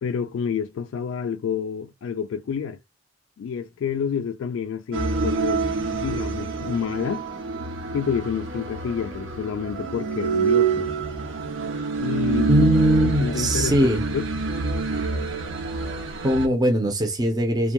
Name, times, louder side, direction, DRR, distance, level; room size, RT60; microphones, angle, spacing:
voice 1, 0.0-2.8 3.4-5.6 5.9-7.3 7.9-10.9 12.0-12.7 13.0-13.9 14.1-14.3, left 7 dB, 80° left, 0.3 m, -28 dB
sound 1, 4.9-16.5, right 4 dB, 75° right, 0.6 m, -27 dB
voice 2, 12.5-14.0 16.2-17.7, right 1 dB, 20° right, 0.5 m, -20 dB
2.2 x 2.2 x 2.9 m
head